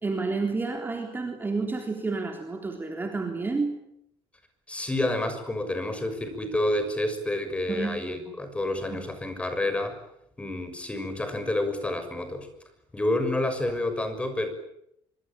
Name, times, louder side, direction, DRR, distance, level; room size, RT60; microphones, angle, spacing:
voice 1, 0.0-3.8 7.7-8.0 8.9-9.0, right 3 dB, 20° right, 3 dB, 3.6 m, -30 dB
voice 2, 4.7-10.0 10.4-12.5 12.9-14.5, left 1 dB, 10° left, 9 dB, 6.3 m, -29 dB
25.5 x 25.0 x 9.0 m, 0.77 s
cardioid pair, 140°, 11 cm